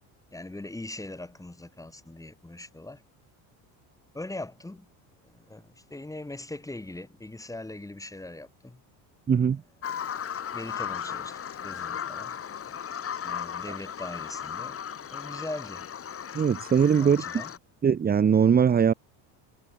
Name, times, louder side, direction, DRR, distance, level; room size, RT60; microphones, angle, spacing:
voice 1, 0.3-3.0 4.1-4.9 5.2-8.8 10.5-12.4 13.2-14.8 15.1-15.9 17.0-17.5, left 2 dB, 5° left, 7.2 m, -41 dB
voice 2, 9.3-9.6 16.3-17.2 17.8-18.9, right 7 dB, 20° right, 1.1 m, -21 dB
Bird vocalization bird call bird song, 9.8-17.6, left 8 dB, 30° left, 3.5 m, -36 dB
cardioid pair, 125°, 43 cm